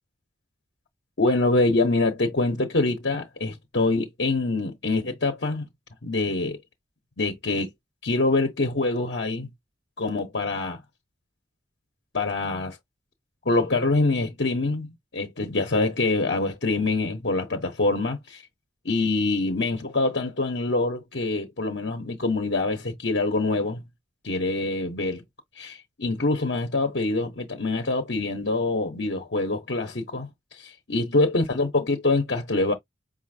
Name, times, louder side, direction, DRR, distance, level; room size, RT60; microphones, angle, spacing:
voice 1, 1.2-5.7 6.0-6.6 7.2-7.7 8.0-9.5 10.0-10.8 12.1-12.8 13.4-18.4 18.8-23.8 24.2-25.2 25.6-30.3 30.6-32.7, left 2 dB, 75° left, 1.1 m, -25 dB
5.1 x 2.7 x 2.7 m
head